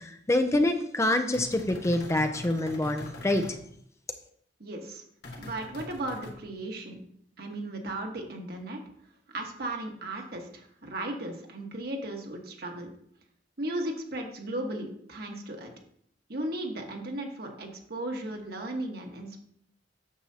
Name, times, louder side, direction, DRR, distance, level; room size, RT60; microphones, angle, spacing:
voice 1, 0.0-3.4, left 1 dB, 15° left, 7 dB, 0.5 m, -26 dB
sound 1, 1.3-3.6 5.2-6.3, left 2 dB, 65° left, 1.7 m, -42 dB
voice 2, 4.6-5.0 5.4-7.0 7.4-8.8 9.3-12.9 13.6-15.7 16.3-19.4, right 1 dB, 60° right, 2 dB, 1.4 m, -36 dB
8.9 x 7.1 x 2.8 m, 0.68 s
head